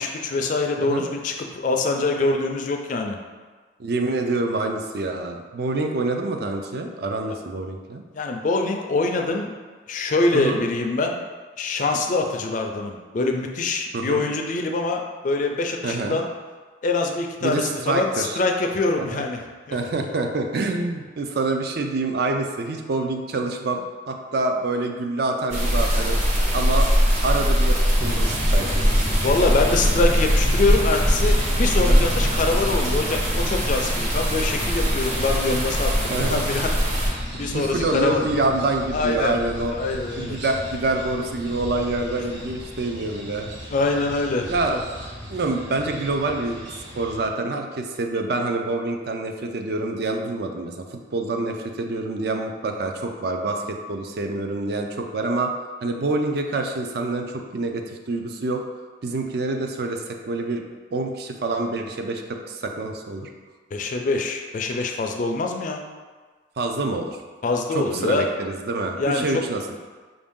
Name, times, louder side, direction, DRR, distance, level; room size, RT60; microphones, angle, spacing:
voice 1, 0.0-3.2 8.1-9.5 9.9-11.2 11.6-16.3 16.8-19.4 19.7-19.8 29.2-36.7 37.4-38.2 38.9-39.3 39.7-40.4 43.7-44.8 63.7-65.8 67.4-68.3 69.0-69.2, left 3 dB, 45° left, 3 dB, 0.4 m, -24 dB
voice 2, 3.8-8.0 10.3-10.6 13.9-14.3 15.8-16.2 17.4-18.4 19.0-19.2 19.7-26.2 26.5-26.9 27.2-28.9 31.7-32.0 36.1-36.4 37.4-39.8 40.2-43.5 44.5-44.8 45.3-46.7 47.0-50.8 51.1-55.5 55.8-58.6 59.0-60.6 60.9-63.3 66.6-67.2 67.7-69.6, right 2 dB, 55° right, 4 dB, 0.4 m, -26 dB
sound 1, 25.5-37.1, equal, 40° right, 0.8 m, -21 dB
sound 2, 28.0-47.3, equal, 90° right, 1.4 m, -34 dB
4.8 x 2.6 x 3.6 m, 1.4 s
head